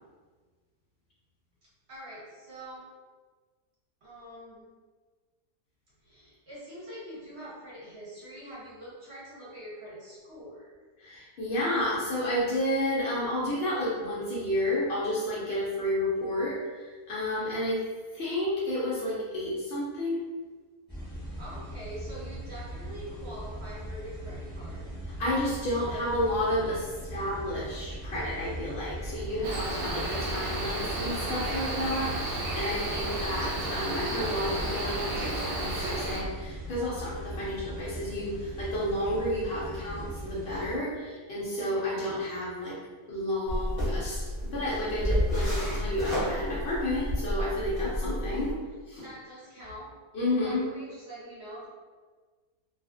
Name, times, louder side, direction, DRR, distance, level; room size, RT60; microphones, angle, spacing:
voice 1, 1.6-2.9 4.0-4.7 6.0-10.7 21.4-24.9 25.9-26.7 41.6-42.1 49.0-49.9 50.4-51.7, right 1 dB, 55° right, -7 dB, 0.8 m, -44 dB
voice 2, 11.0-17.9 18.1-20.3 25.2-26.8 27.1-42.8 43.1-48.6 48.9-49.0 50.1-50.7, left 1 dB, 85° left, -7 dB, 0.5 m, -31 dB
sound 1, 20.9-40.8, right 1 dB, 5° right, 0.7 m, -40 dB
Cricket, 29.4-36.2, right 1 dB, 85° right, 0.6 m, -32 dB
sound 2, 43.5-48.5, equal, 30° left, 0.7 m, -31 dB
2.5 x 2.3 x 2.4 m, 1.4 s
omnidirectional pair, 1.7 m